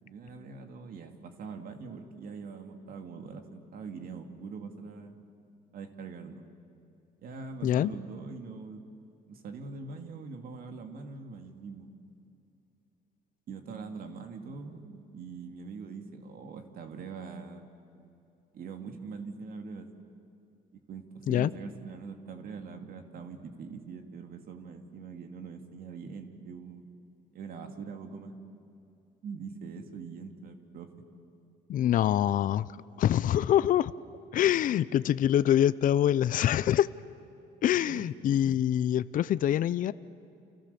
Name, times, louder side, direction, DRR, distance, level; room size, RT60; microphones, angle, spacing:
voice 1, 0.0-5.2 5.7-6.4 7.2-8.8 9.3-11.9 13.5-17.6 18.5-19.9 20.9-26.9 27.3-28.3 29.2-30.9 37.9-38.1, right 5 dB, 60° right, 5 dB, 2.5 m, -43 dB
voice 2, 31.7-32.7 33.0-33.9 34.3-36.9 37.6-39.9, left 11 dB, 55° left, 16 dB, 0.6 m, -25 dB
30.0 x 28.5 x 7.0 m, 2.7 s
cardioid pair, 110°, 17 cm